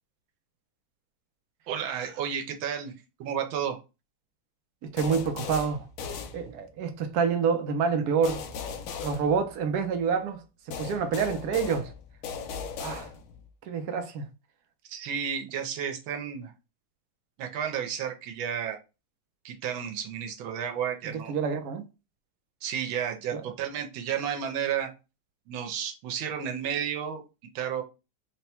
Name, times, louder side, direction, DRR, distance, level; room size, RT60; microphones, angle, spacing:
voice 1, 1.7-2.9 3.2-3.8 14.9-16.5 17.4-18.8 19.4-21.3 22.6-24.9 25.5-27.2 27.5-27.8, right 8 dB, 90° right, 1.5 m, -32 dB
voice 2, 4.8-5.8 6.3-8.4 9.0-10.4 10.8-11.9 12.8-13.1 13.7-14.3 21.1-21.8 23.3-23.4, right 6 dB, 65° right, 1.0 m, -27 dB
sound 1, 5.0-6.9 8.2-10.0 10.7-13.5, left 6 dB, 90° left, 1.4 m, -38 dB
3.9 x 2.2 x 4.2 m
omnidirectional pair, 2.1 m